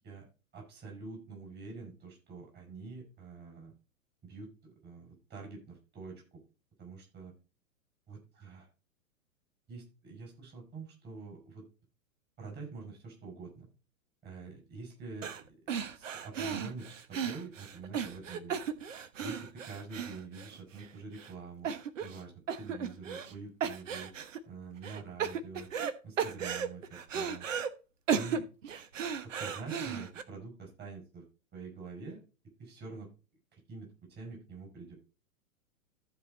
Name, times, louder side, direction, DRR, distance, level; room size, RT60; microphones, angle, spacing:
voice 1, 0.5-3.7 4.2-6.4 6.8-7.3 8.1-8.7 9.7-11.6 12.4-13.6 14.2-15.4 15.9-18.5 19.2-21.7 22.0-24.1 24.5-25.7 26.0-27.4 28.1-28.5 29.3-31.2 31.5-32.2 32.6-33.1 33.5-35.0, right 4 dB, 25° right, 1 dB, 5.1 m, -46 dB
sound 1, 15.2-15.4 15.7-20.9 21.2-21.3 21.6-22.2 22.5-23.3 23.6-24.4 24.8-25.9 26.2-27.7 28.1-30.2, right 7 dB, 60° right, 1.2 m, -35 dB
14.5 x 4.9 x 4.0 m, 0.33 s
figure-of-eight pair, 110°, 43 cm